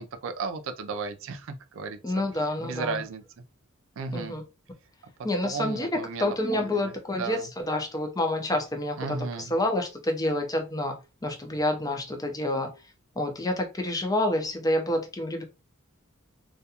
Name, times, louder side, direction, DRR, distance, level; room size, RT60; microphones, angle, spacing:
voice 1, 0.0-2.0 2.6-3.2 4.0-4.4 5.4-6.9 7.2-7.5 9.0-9.5, right 4 dB, 65° right, 0.4 m, -34 dB
voice 2, 2.0-3.0 4.1-4.4 5.2-5.9 6.2-12.7 13.2-15.4, left 1 dB, 15° left, 0.5 m, -28 dB
2.4 x 2.3 x 2.8 m
head